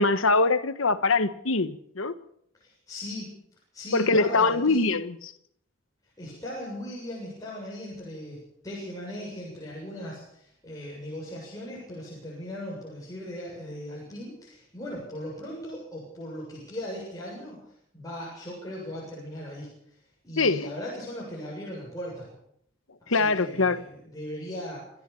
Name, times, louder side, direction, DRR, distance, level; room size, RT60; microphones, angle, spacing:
voice 1, 0.0-2.1 3.9-5.2 20.4-20.7 23.1-23.8, left 3 dB, 80° left, 1.3 m, -23 dB
voice 2, 2.6-3.4 3.7-4.9 6.2-17.6 17.9-19.7 20.2-22.3 23.0-24.8, left 1 dB, 15° left, 7.6 m, -38 dB
27.5 x 13.5 x 7.1 m
head